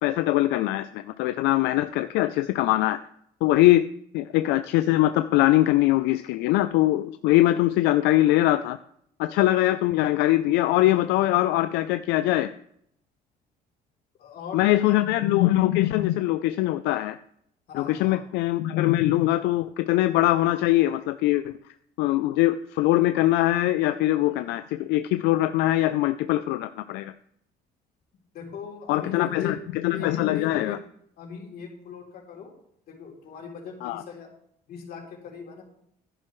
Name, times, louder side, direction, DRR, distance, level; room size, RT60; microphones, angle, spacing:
voice 1, 0.0-3.0 3.4-3.8 4.1-8.8 9.2-12.5 14.5-17.2 17.7-21.5 22.0-27.1 28.9-29.6 29.8-30.8 33.8-34.0, left 15 dB, 90° left, 11 dB, 0.4 m, -22 dB
voice 2, 14.2-15.0 17.7-18.2 28.3-29.6 29.9-30.8 31.2-32.5 32.9-34.3 34.7-35.6, left 6 dB, 60° left, 0 dB, 3.3 m, -39 dB
11.0 x 10.5 x 3.1 m, 0.71 s
cardioid pair, 110°, 17 cm